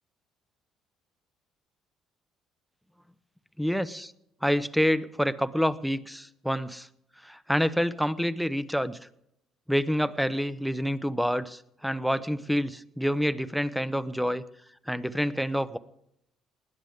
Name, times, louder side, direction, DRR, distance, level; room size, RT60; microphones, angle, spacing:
voice 1, 3.6-4.1 4.4-6.9 7.2-9.0 9.7-14.4 14.9-15.8, equal, ahead, 14 dB, 0.9 m, -27 dB
20.0 x 11.0 x 3.6 m, 0.77 s
supercardioid pair, 65°, 0 cm